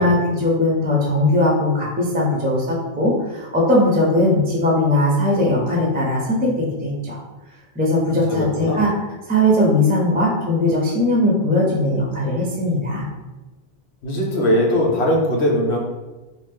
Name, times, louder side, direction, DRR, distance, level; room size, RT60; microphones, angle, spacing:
voice 1, 0.0-7.2 7.7-8.9 9.3-13.1, left 1 dB, 15° right, -3 dB, 0.3 m, -19 dB
voice 2, 8.3-8.9 14.0-15.8, equal, 90° left, -1 dB, 1.0 m, -20 dB
2.9 x 2.1 x 3.4 m, 1.1 s
omnidirectional pair, 1.1 m